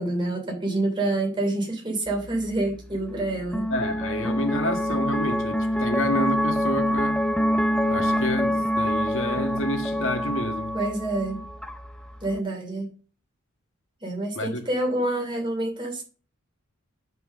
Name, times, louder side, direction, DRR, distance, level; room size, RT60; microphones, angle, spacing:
voice 1, 0.0-3.7 10.7-11.4 12.2-12.9 14.0-16.0, right 2 dB, 20° right, 2.9 m, -27 dB
sound 1, 2.1-12.4, equal, 5° left, 0.5 m, -26 dB
voice 2, 3.7-7.2 7.9-10.7 14.4-14.6, left 1 dB, 60° left, 1.8 m, -29 dB
11.0 x 4.6 x 6.4 m
head